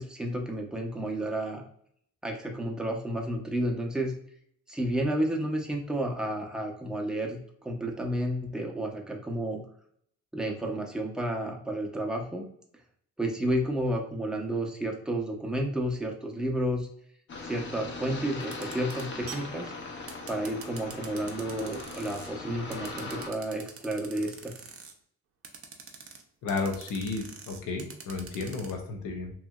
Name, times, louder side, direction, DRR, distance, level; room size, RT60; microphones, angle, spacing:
voice 1, 0.0-1.6 2.2-4.1 4.7-9.6 10.3-12.4 13.2-16.9 17.4-19.7 20.3-24.5, right 1 dB, ahead, 0 dB, 0.6 m, -31 dB
sound 1, 17.3-23.3, left 3 dB, 40° left, 0.6 m, -40 dB
sound 2, 18.4-22.3 22.7-24.9 25.4-26.2 26.5-28.7, right 6 dB, 50° right, 0.6 m, -44 dB
voice 2, 26.4-29.3, left 3 dB, 85° left, 3 dB, 0.7 m, -33 dB
2.9 x 2.6 x 2.3 m, 0.66 s
cardioid pair, 90°, 30 cm